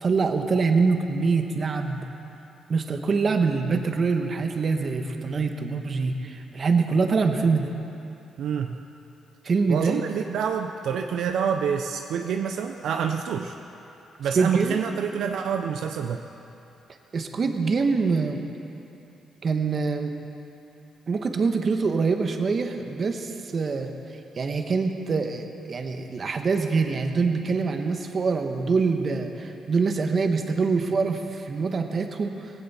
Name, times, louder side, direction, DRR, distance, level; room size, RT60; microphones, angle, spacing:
voice 1, 0.0-2.1 2.7-7.7 9.4-10.0 14.3-14.7 17.1-18.4 19.4-20.1 21.1-23.9 24.3-32.5, right 4 dB, 45° right, 5 dB, 1.3 m, -24 dB
voice 2, 8.4-8.8 9.7-13.5 14.2-16.2, right 7 dB, 75° right, 5 dB, 0.6 m, -27 dB
17.5 x 16.0 x 4.3 m, 2.9 s
cardioid pair, 90°, 0 cm